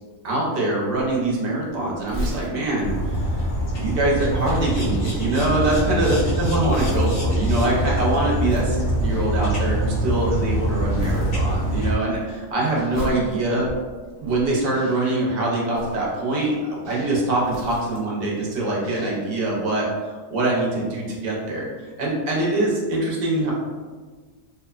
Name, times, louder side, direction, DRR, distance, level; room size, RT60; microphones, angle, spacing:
voice 1, 0.2-3.4 3.8-13.7 14.2-21.7 22.0-23.5, right 2 dB, 55° right, -3 dB, 0.7 m, -24 dB
Crumpling crinkling, 2.1-10.6 11.0-11.9 12.2-14.9 15.6-18.3 18.6-18.7, equal, 15° right, 0.6 m, -37 dB
sound 1, 2.8-11.9, right 1 dB, 60° left, 1.0 m, -24 dB
sound 2, 6.0-6.6 7.5-8.1 9.1-9.7 10.9-11.4 12.7-13.3 14.7-15.3 16.8-17.4 18.8-19.4, equal, 80° left, 1.4 m, -40 dB
2.9 x 2.1 x 2.3 m, 1.4 s
omnidirectional pair, 1.4 m